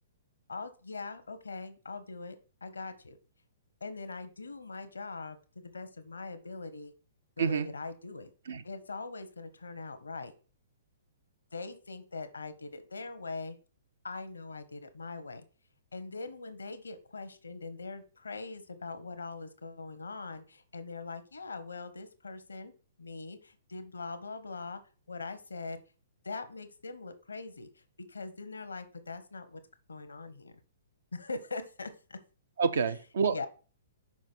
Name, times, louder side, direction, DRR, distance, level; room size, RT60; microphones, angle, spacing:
voice 1, 0.5-2.4 2.6-3.2 3.8-6.9 7.4-8.3 8.6-10.3 11.5-13.6 14.0-15.4 15.9-22.7 23.0-24.8 25.1-25.8 26.2-27.8 28.1-29.6 29.9-30.5 31.1-32.2 33.3-33.5, left 3 dB, 85° left, 0.9 m, -42 dB
voice 2, 32.6-33.5, right 5 dB, 70° right, 0.7 m, -28 dB
6.0 x 4.7 x 4.4 m
hypercardioid pair, 125°, 0 cm